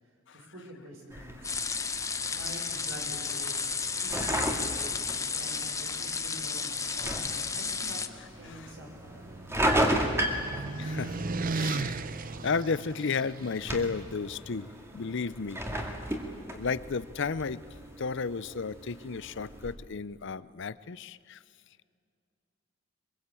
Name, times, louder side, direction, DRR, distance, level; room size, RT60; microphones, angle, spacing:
voice 1, 0.3-1.6 2.3-5.0 5.3-8.0 8.4-9.3, right 1 dB, 70° right, 0 dB, 6.2 m, -47 dB
sound 1, 1.1-19.7, right 1 dB, 15° right, 2.2 m, -35 dB
sound 2, 1.4-8.1, left 5 dB, 15° left, 0.9 m, -33 dB
voice 2, 1.7-2.3 8.5-8.7 10.6-11.3 11.5-12.0 12.4-15.9 16.5-17.6 18.0-21.4, left 5 dB, 60° left, 17 dB, 0.6 m, -34 dB
sound 3, 8.3-13.6, right 3 dB, 40° right, 0.7 m, -36 dB
24.0 x 22.5 x 8.4 m, 2.3 s
head